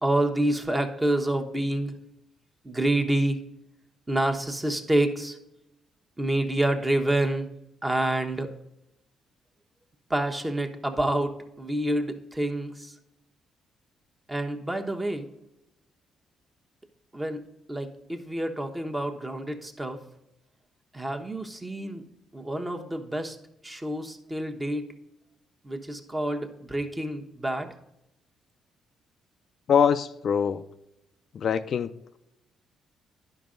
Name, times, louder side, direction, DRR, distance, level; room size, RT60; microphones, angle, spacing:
voice 1, 0.0-1.9 2.6-3.4 4.1-5.4 6.2-7.5 7.8-8.5 10.1-12.9 14.3-15.3 17.1-17.4 17.7-20.0 20.9-22.0 22.3-23.4 23.6-24.9 25.6-27.7, right 1 dB, 15° right, 1.1 m, -28 dB
voice 2, 29.7-30.6 31.3-31.9, left 7 dB, 60° left, 0.4 m, -23 dB
11.0 x 5.3 x 3.8 m
cardioid pair, 90°, 0 cm